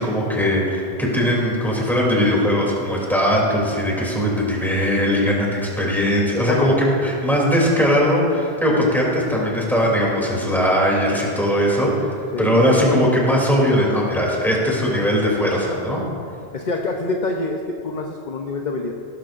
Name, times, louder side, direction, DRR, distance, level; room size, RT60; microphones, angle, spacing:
voice 1, 0.0-16.0, equal, ahead, -4 dB, 3.0 m, -19 dB
voice 2, 16.5-18.9, left 3 dB, 45° left, 2 dB, 0.8 m, -26 dB
18.0 x 12.5 x 2.6 m, 2.4 s
omnidirectional pair, 1.2 m